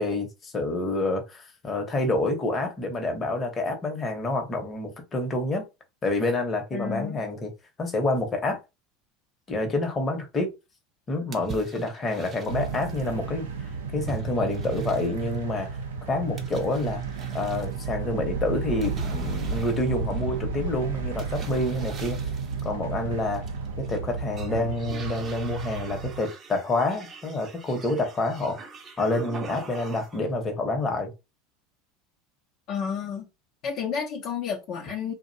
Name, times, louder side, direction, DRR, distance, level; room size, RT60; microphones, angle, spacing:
voice 1, 0.0-5.6 6.0-7.5 7.8-8.6 9.5-10.5 11.1-13.5 13.9-15.7 16.1-17.0 17.3-22.2 22.6-23.4 23.8-28.6 29.0-31.1, left 2 dB, 25° left, 0.8 m, -28 dB
voice 2, 6.7-7.2 32.7-33.3 33.6-35.1, left 7 dB, 55° left, 0.6 m, -31 dB
sound 1, 11.3-13.1 14.1-15.4 16.4-17.7 18.8-20.5 21.2-22.7 23.3-24.0 24.3-30.3, right 5 dB, 35° right, 0.6 m, -43 dB
sound 2, 12.4-26.2, right 4 dB, 85° right, 0.6 m, -32 dB
2.5 x 2.1 x 2.6 m
hypercardioid pair, 95°, 0 cm